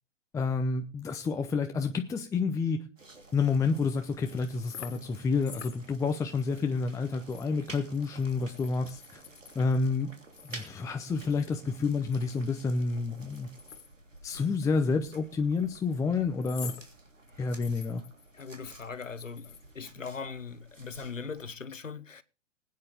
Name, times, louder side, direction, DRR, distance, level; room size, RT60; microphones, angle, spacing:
voice 1, 0.3-2.9 3.3-9.2 9.5-10.1 10.4-13.5 14.2-16.7 17.4-18.0, left 4 dB, 10° left, 0.7 m, -29 dB
sound 1, 3.0-21.5, right 2 dB, 90° right, 3.0 m, -52 dB
sound 2, 3.7-5.1 5.4-6.4 6.8-6.9 7.3-9.8 10.3-11.7 12.0-14.4 14.7-14.8 15.6-16.0 16.4-16.9 17.3-19.7, left 7 dB, 65° left, 1.9 m, -48 dB
voice 2, 18.3-22.2, left 5 dB, 90° left, 1.0 m, -40 dB
20.5 x 9.4 x 3.5 m
figure-of-eight pair, 115°, 37 cm